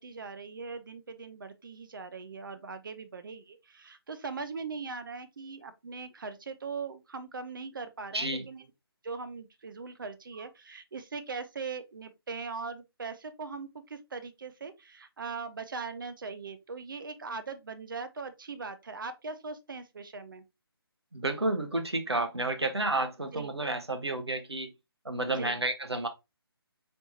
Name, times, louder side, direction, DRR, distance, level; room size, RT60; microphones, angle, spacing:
voice 1, 0.0-8.6 9.0-20.4 23.3-23.5 25.4-25.5, right 4 dB, 55° right, 0.7 m, -40 dB
voice 2, 8.1-8.5 21.1-24.7 25.0-26.1, right 2 dB, 90° right, 1.0 m, -31 dB
4.3 x 3.4 x 2.7 m
figure-of-eight pair, 150°, 13 cm